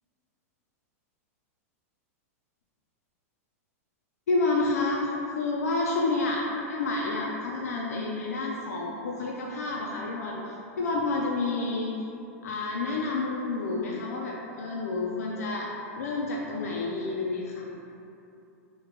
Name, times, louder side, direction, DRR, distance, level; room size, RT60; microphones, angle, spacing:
voice 1, 4.3-11.9 12.4-15.7 16.0-17.6, left 3 dB, 85° left, -2 dB, 0.4 m, -29 dB
3.0 x 2.1 x 3.6 m, 2.8 s
hypercardioid pair, 120°, 8 cm